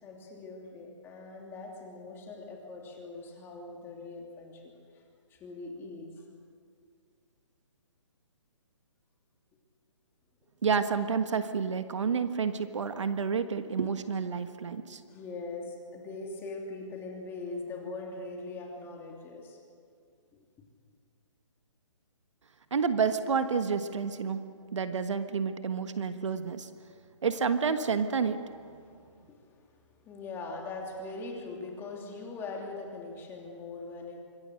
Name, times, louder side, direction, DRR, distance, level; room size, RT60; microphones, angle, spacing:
voice 1, 0.0-4.7 5.3-6.3 15.1-19.6 20.3-20.4 28.8-34.2, left 3 dB, 15° left, 0 dB, 2.9 m, -41 dB
voice 2, 10.6-15.0 22.7-24.4 24.7-26.7 27.2-28.4, right 6 dB, 65° right, 9 dB, 1.4 m, -29 dB
25.5 x 22.0 x 6.4 m, 2.3 s
hypercardioid pair, 155°, 16 cm